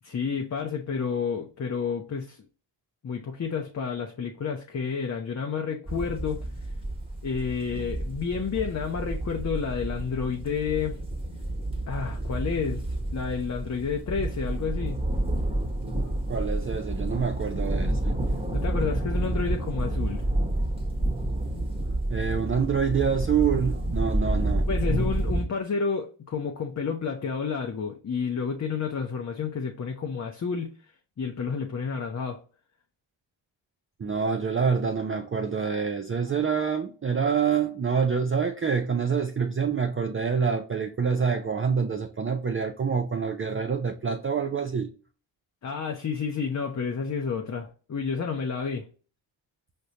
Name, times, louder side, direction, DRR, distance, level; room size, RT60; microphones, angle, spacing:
voice 1, 0.0-2.4 3.0-6.4 7.2-11.0 11.9-12.8 13.1-15.0 18.5-20.3 24.7-30.7 31.2-32.4 45.6-48.9, left 6 dB, 35° left, 0.6 m, -30 dB
sound 1, 5.9-25.5, right 1 dB, 10° right, 1.1 m, -29 dB
voice 2, 16.0-18.2 21.8-24.7 34.0-44.9, right 6 dB, 30° right, 0.5 m, -27 dB
4.9 x 2.2 x 2.8 m
supercardioid pair, 45°, 48 cm